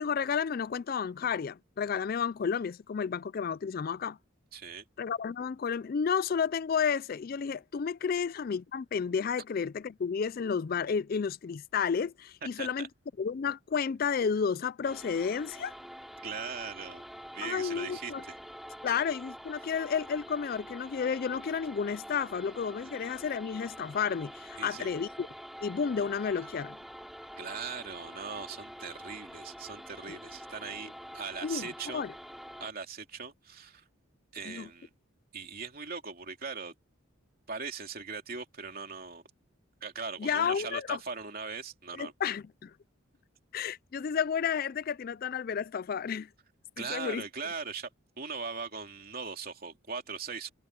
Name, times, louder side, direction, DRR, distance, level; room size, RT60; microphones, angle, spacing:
voice 1, 0.0-4.2 5.0-12.9 13.2-15.7 17.4-18.2 18.8-25.3 25.6-26.8 30.1-30.2 31.4-32.1 34.5-34.7 40.2-41.0 41.9-42.7 43.5-46.3 46.8-47.2, left 6 dB, 45° left, 0.3 m, -31 dB
voice 2, 4.5-4.8 12.4-12.9 16.2-17.0 17.3-18.4 19.6-19.7 24.6-24.9 27.4-32.1 32.6-33.8 34.3-34.9 35.3-36.7 37.5-39.2 39.8-42.1 46.8-47.9 48.2-50.5, right 5 dB, 45° right, 3.1 m, -40 dB
sound 1, 14.8-32.7, equal, ahead, 3.1 m, -46 dB
head